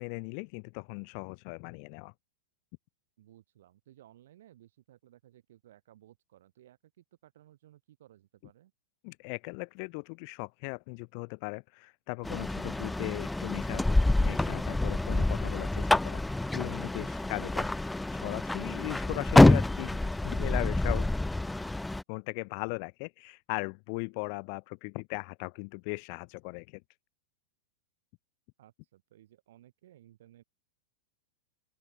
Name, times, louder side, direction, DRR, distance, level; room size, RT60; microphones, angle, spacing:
voice 1, 0.0-2.1 9.0-13.8 14.2-16.2 16.5-17.7 18.1-21.1 22.1-26.8, left 40 dB or more, 35° left, 2.2 m, -38 dB
voice 2, 3.2-8.7 12.4-12.7 28.6-30.4, right 13 dB, 65° right, 6.9 m, -58 dB
sound 1, 12.2-22.0, left 2 dB, 5° left, 0.3 m, -26 dB
open air
supercardioid pair, 170°, 0 cm